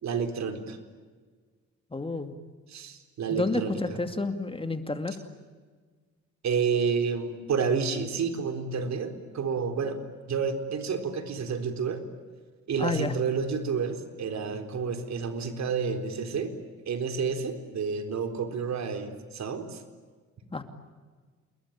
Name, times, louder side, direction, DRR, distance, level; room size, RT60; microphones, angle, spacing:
voice 1, 0.0-0.8 2.7-4.0 6.4-10.0 10.3-12.0 12.7-16.5 16.9-19.8, right 5 dB, 65° right, 7 dB, 4.1 m, -30 dB
voice 2, 1.9-2.3 3.3-5.1 12.8-13.1 20.5-20.6, left 3 dB, 20° left, 8 dB, 2.4 m, -30 dB
29.0 x 21.5 x 8.9 m, 1.5 s
cardioid pair, 90°, 30 cm